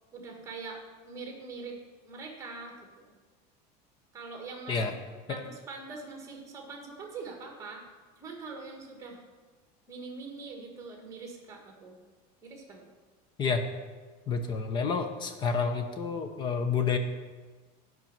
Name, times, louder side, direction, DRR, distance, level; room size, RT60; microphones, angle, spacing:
voice 1, 0.1-1.8 2.0-3.1 4.1-4.8 5.3-7.8 8.2-9.2 9.9-12.0 12.4-12.9, right 4 dB, 15° right, 2 dB, 1.5 m, -43 dB
voice 2, 14.3-17.0, left 5 dB, 20° left, 7 dB, 0.7 m, -29 dB
8.8 x 5.4 x 7.3 m, 1.4 s
cardioid pair, 175°, 20 cm